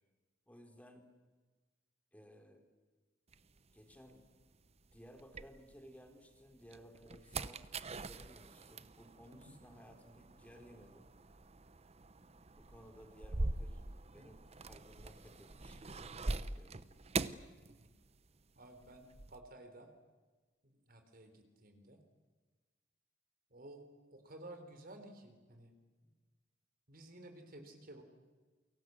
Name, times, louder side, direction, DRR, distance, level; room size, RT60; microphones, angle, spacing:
voice 1, 0.5-1.1 2.1-2.7 3.7-4.3 4.9-7.6 8.0-11.1 12.5-13.8 14.1-16.8 26.0-26.1, equal, 10° left, 4 dB, 3.4 m, -58 dB
sound 1, 3.3-6.1 6.5-18.3 18.6-19.4, right 2 dB, 35° right, 0.9 m, -43 dB
voice 2, 18.6-19.9 20.6-22.0 23.5-25.7 26.9-28.0, right 1 dB, 50° right, 6 dB, 4.2 m, -54 dB
29.5 x 24.0 x 8.0 m, 1.3 s
head